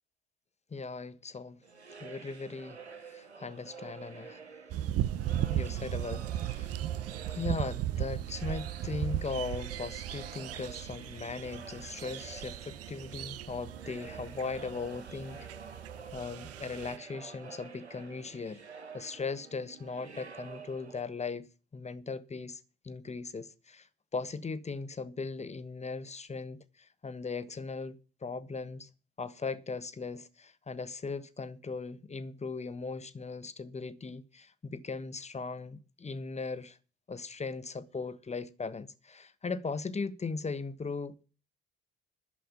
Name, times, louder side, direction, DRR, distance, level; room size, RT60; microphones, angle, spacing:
voice 1, 0.7-1.6 2.0-4.4 5.4-6.8 7.3-15.5 16.1-18.6 18.9-28.9 29.2-36.8 37.1-41.2, left 4 dB, 20° left, 1.3 m, -38 dB
sound 1, 1.6-21.0, right 5 dB, 90° right, 0.8 m, -49 dB
sound 2, 4.7-17.0, right 12 dB, 50° right, 0.8 m, -36 dB
11.5 x 7.6 x 8.5 m
figure-of-eight pair, 50°, 32 cm